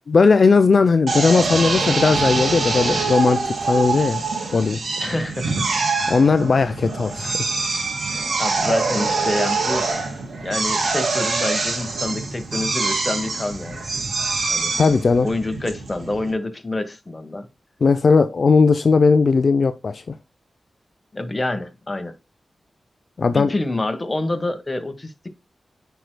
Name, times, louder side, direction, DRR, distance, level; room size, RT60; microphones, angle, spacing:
voice 1, 0.1-4.2 4.5-4.8 6.1-7.5 14.8-15.3 17.8-20.1 23.2-23.5, left 4 dB, 60° left, 0.4 m, -17 dB
Drill, 1.1-16.3, right 3 dB, 75° right, 2.4 m, -24 dB
voice 2, 5.0-5.6 8.4-9.9 10.4-13.9 14.5-14.7 15.2-17.5 21.1-22.1 23.3-25.3, left 2 dB, 30° left, 1.2 m, -27 dB
9.2 x 4.6 x 2.2 m
cardioid pair, 55°, 0 cm